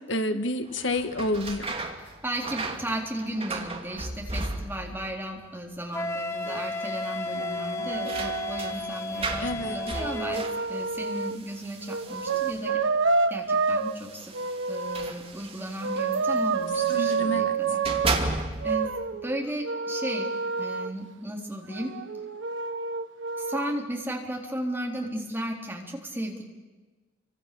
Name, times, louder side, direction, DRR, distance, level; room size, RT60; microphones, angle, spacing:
voice 1, 0.1-1.6 9.4-9.8 16.9-17.5, left 1 dB, 70° left, 8 dB, 1.5 m, -29 dB
sound 1, 0.7-5.1 5.3-6.0 6.3-6.4 7.5-12.9 13.8-17.3 17.7-18.9, right 3 dB, 30° right, 2.6 m, -35 dB
voice 2, 2.2-12.8 13.3-14.4 14.7-18.9 19.2-20.3 20.6-22.0 23.4-26.4, right 1 dB, 10° right, 0 dB, 4.0 m, -35 dB
Wind instrument woodwind instrument, 5.9-10.5, left 2 dB, 15° left, 1.2 m, -33 dB
sound 2, 6.5-6.6 7.3-8.7 9.6-11.4 11.9-13.9 14.3-15.1 15.8-18.1 18.6-20.9 21.7-23.7, right 4 dB, 70° right, 1.2 m, -29 dB
29.5 x 25.0 x 7.0 m, 1.3 s
head